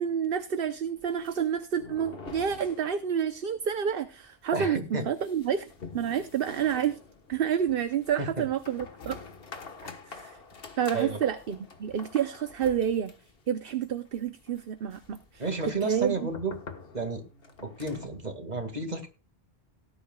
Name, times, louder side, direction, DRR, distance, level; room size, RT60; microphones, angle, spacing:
voice 1, 0.0-5.7 5.9-7.0 7.3-9.2 10.1-10.4 10.8-13.1 13.5-15.4 15.8-16.2, right 8 dB, 65° right, 10 dB, 1.0 m, -29 dB
sound 1, 1.0-3.4 3.6-3.7 4.0-4.1 4.6-18.2, left 4 dB, 65° left, 1.6 m, -47 dB
voice 2, 4.5-5.1 8.2-8.5 10.9-11.2 15.4-16.5 16.9-17.2 17.6-19.1, right 3 dB, 45° right, 6 dB, 2.3 m, -31 dB
18.0 x 10.5 x 2.3 m, 0.31 s
omnidirectional pair, 1.0 m